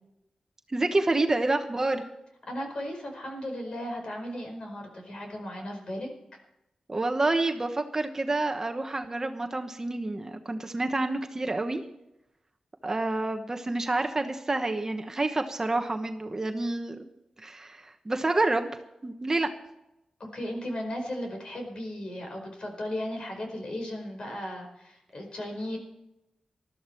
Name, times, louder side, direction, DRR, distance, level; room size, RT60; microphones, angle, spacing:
voice 1, 0.7-2.0 6.9-11.8 12.8-17.0 17.4-18.7 19.0-19.5, right 2 dB, 25° right, 5 dB, 1.1 m, -28 dB
voice 2, 2.5-6.1 20.3-25.8, left 1 dB, 50° left, 2 dB, 4.9 m, -36 dB
20.0 x 13.0 x 4.5 m, 0.87 s
wide cardioid pair, 135°, 2 cm